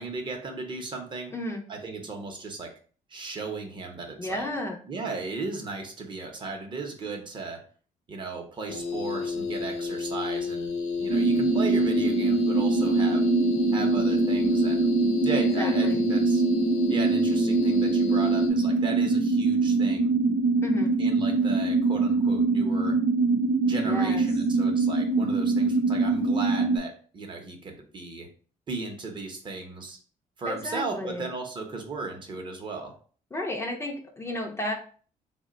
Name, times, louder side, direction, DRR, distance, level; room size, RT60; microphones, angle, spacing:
voice 1, 0.0-1.3 1.7-2.7 3.1-4.5 4.9-7.6 8.1-10.7 11.0-13.3 13.7-14.9 15.2-16.4 16.9-20.1 21.0-23.0 23.7-28.3 28.7-30.0 30.4-33.0, right 3 dB, 35° right, 3 dB, 0.7 m, -36 dB
voice 2, 1.3-1.6 4.2-4.8 15.6-16.0 20.6-20.9 23.8-24.2 30.5-31.3 33.3-34.7, left 1 dB, 20° left, 1 dB, 0.5 m, -32 dB
sound 1, 8.7-18.5, left 5 dB, 50° left, 0.7 m, -30 dB
sound 2, 11.1-26.8, right 3 dB, 70° right, 0.7 m, -24 dB
3.7 x 2.1 x 3.7 m, 0.42 s
cardioid pair, 160°, 15 cm